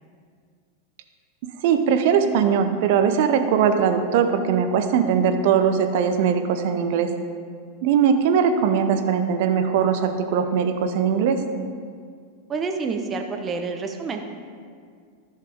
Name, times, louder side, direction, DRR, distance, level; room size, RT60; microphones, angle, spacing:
voice 1, 1.6-7.1 7.8-11.4, right 7 dB, 55° right, 8 dB, 0.7 m, -20 dB
voice 2, 12.5-14.2, right 4 dB, 25° right, 4 dB, 1.0 m, -28 dB
13.5 x 5.8 x 3.6 m, 2.1 s
figure-of-eight pair, 90°, 0 cm